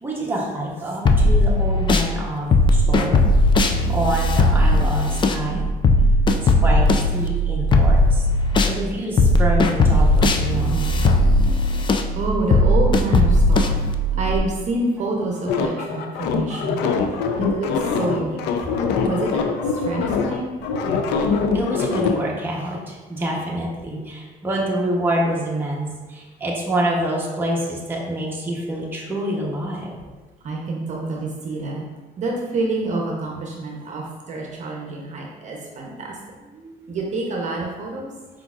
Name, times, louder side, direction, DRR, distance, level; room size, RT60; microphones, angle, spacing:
voice 1, 0.0-3.2 3.9-5.6 6.3-8.2 8.6-10.9 14.1-14.3 20.1-20.2 21.2-30.0 36.5-36.9, right 1 dB, 10° right, -4 dB, 0.9 m, -27 dB
sound 1, 1.1-2.1 2.5-8.8 9.2-14.4, left 1 dB, 30° left, 0.3 m, -17 dB
voice 2, 12.1-13.8 14.2-16.8 17.4-17.7 17.9-18.4 19.0-19.3 19.7-20.5 30.4-31.8 32.2-36.2 36.9-38.1, right 2 dB, 45° right, -1 dB, 0.7 m, -27 dB
sound 2, 15.5-22.2, left 5 dB, 90° left, 0.5 m, -23 dB
4.8 x 3.9 x 2.4 m, 1.3 s
cardioid pair, 110°, 17 cm